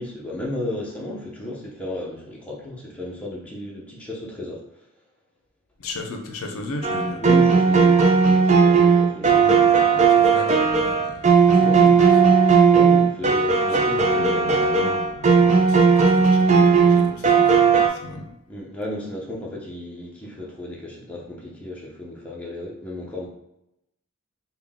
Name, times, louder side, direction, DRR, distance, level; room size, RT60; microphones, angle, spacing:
voice 1, 0.0-4.7 7.2-9.4 11.6-12.0 12.7-14.6 18.5-23.3, left 1 dB, 5° left, -4 dB, 0.7 m, -33 dB
voice 2, 5.8-7.2 9.2-12.3 14.0-18.3, left 2 dB, 80° left, 4 dB, 0.6 m, -35 dB
sound 1, 6.8-17.9, right 5 dB, 35° right, 0.4 m, -16 dB
3.6 x 2.3 x 3.5 m, 0.82 s
head